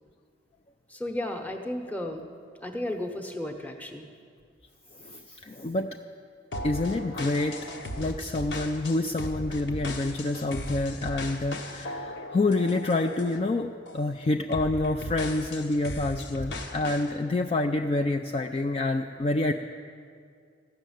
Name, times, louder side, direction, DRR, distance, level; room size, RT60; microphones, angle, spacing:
voice 1, 0.9-2.3 2.6-4.1, left 1 dB, 10° left, 4 dB, 0.9 m, -34 dB
voice 2, 5.0-5.9 6.6-7.6 8.0-13.7 13.9-19.5, left 2 dB, 35° left, 4 dB, 0.3 m, -27 dB
sound 1, 6.5-13.5 13.9-14.1 14.5-17.1, left 1 dB, 75° left, 1.0 m, -37 dB
14.5 x 6.4 x 9.2 m, 2.2 s
head